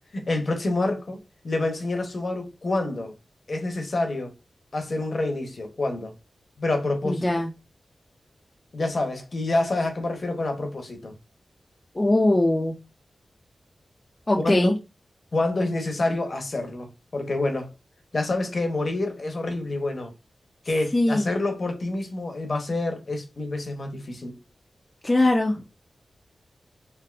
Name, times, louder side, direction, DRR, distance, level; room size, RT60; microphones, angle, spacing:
voice 1, 0.1-1.2 1.4-3.1 3.5-4.3 4.7-6.1 6.6-7.3 8.7-11.1 14.3-14.7 15.3-17.7 18.1-20.1 20.7-24.4, left 2 dB, 45° left, 0.8 m, -27 dB
voice 2, 7.0-7.5 12.0-12.7 14.3-14.7 20.9-21.3 25.0-25.6, left 1 dB, 20° left, 0.4 m, -21 dB
3.3 x 2.5 x 2.4 m
wide cardioid pair, 125°, 0 cm